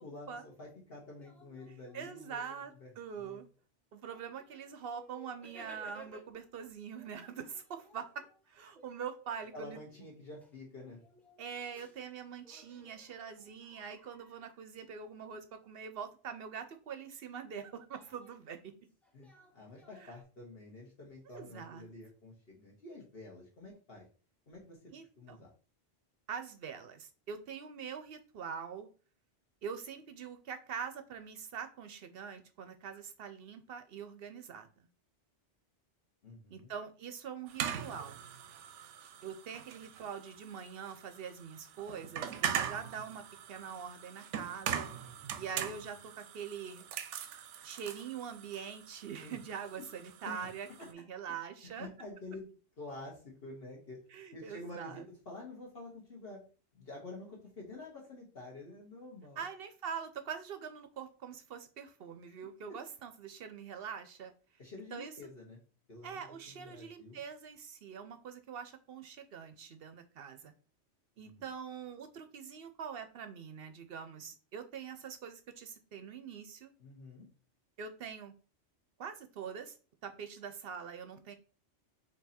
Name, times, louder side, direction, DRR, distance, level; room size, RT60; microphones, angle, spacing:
voice 1, 0.0-2.9 3.2-3.4 9.5-11.0 19.1-24.0 24.5-24.8 25.2-25.5 36.2-36.7 49.2-49.4 50.2-50.5 51.6-52.4 52.8-56.4 56.7-59.4 64.6-65.6 65.9-67.2 71.2-71.4 76.8-77.3, left 2 dB, 55° left, -3 dB, 1.4 m, -49 dB
sound 1, 1.1-2.9 3.6-3.7 4.1-6.5 6.9-12.1 12.4-14.8 17.9-20.2, right 1 dB, ahead, 0.7 m, -59 dB
voice 2, 1.7-3.5 3.9-9.8 11.4-18.7 20.0-20.2 21.3-21.8 24.9-25.4 26.3-28.9 29.6-34.9 36.5-38.3 39.2-44.9 45.4-46.9 47.6-51.9 54.1-55.1 59.4-64.3 64.9-65.1 66.0-70.5 71.2-76.7 77.8-78.3 79.0-79.8 80.0-81.3, right 7 dB, 65° right, 9 dB, 0.7 m, -44 dB
sound 2, 37.5-50.9, right 8 dB, 90° right, 0.9 m, -41 dB
4.5 x 2.8 x 4.1 m, 0.37 s
omnidirectional pair, 1.2 m